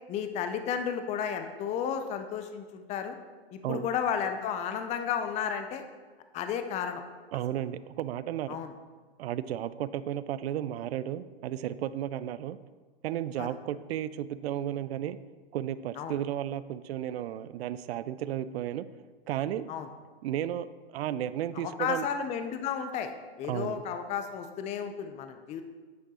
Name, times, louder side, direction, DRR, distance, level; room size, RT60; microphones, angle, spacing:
voice 1, 0.1-3.2 3.5-5.8 6.3-7.0 8.5-8.7 13.4-13.5 16.0-16.2 19.7-19.9 21.5-23.1 23.4-25.6, left 7 dB, 20° left, 8 dB, 0.5 m, -33 dB
voice 2, 7.3-8.6 9.2-12.6 13.0-15.2 15.5-18.9 19.3-19.7 20.2-22.1 23.5-23.8, right 11 dB, 70° right, 15 dB, 0.5 m, -33 dB
9.1 x 5.2 x 4.1 m, 1.4 s
hypercardioid pair, 120°, 32 cm